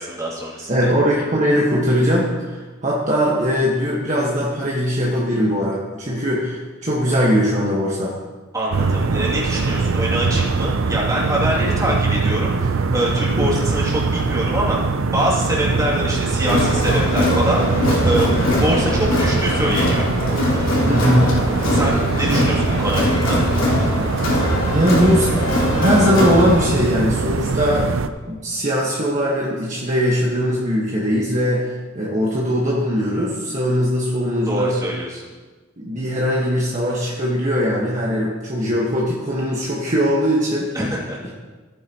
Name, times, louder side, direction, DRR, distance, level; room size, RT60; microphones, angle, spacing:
voice 1, 0.0-0.9 8.5-14.8 15.1-18.3 18.6-20.1 21.7-23.4 34.5-35.3 40.7-41.3, equal, 15° right, -6 dB, 2.7 m, -24 dB
voice 2, 0.7-8.1 13.3-13.5 20.9-21.3 21.7-21.8 22.3-22.4 24.7-25.3 25.8-27.9 28.3-34.8 35.8-40.8, equal, 40° right, -5 dB, 1.5 m, -20 dB
sound 1, 8.7-28.1, right 4 dB, 85° right, 0.6 m, -22 dB
Crowd, 16.5-26.7, left 1 dB, 85° left, 3.3 m, -21 dB
15.0 x 9.5 x 3.0 m, 1.3 s
head